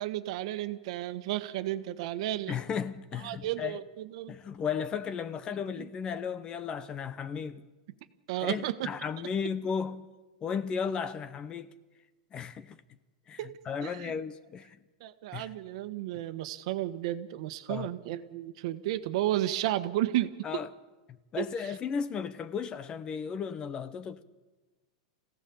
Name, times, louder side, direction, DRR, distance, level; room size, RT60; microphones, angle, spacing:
voice 1, 0.0-2.6 3.2-4.3 5.8-5.9 8.3-8.9 13.4-13.5 13.8-14.1 15.0-20.3 21.4-21.7, right 14 dB, 60° right, 1.4 m, -33 dB
voice 2, 2.5-3.8 4.3-7.6 8.4-10.1 10.4-11.7 12.3-12.8 13.3-14.8 15.3-15.5 17.7-17.9 20.4-20.7 21.3-24.2, left 6 dB, 25° left, 0.9 m, -35 dB
26.5 x 17.0 x 7.1 m
supercardioid pair, 145°, 4 cm